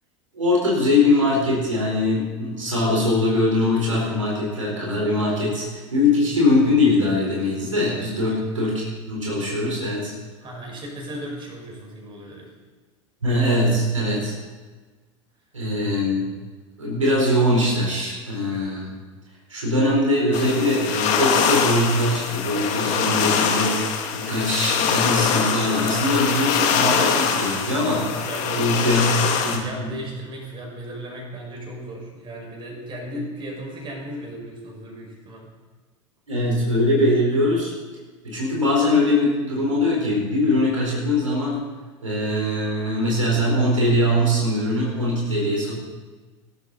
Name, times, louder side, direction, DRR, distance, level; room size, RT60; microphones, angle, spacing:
voice 1, 0.3-10.1 13.2-14.3 15.5-16.3 16.8-18.9 19.5-28.3 28.5-29.1 29.4-30.0 36.3-37.7 38.2-41.7 42.0-45.8, left 1 dB, 80° right, -3 dB, 4.6 m, -22 dB
voice 2, 10.4-12.5 28.2-35.5 37.3-37.4, right 1 dB, 30° right, -1 dB, 6.0 m, -36 dB
sound 1, 20.3-29.6, left 6 dB, 45° left, 2.2 m, -23 dB
21.0 x 12.5 x 4.2 m, 1.3 s
figure-of-eight pair, 80°, 16 cm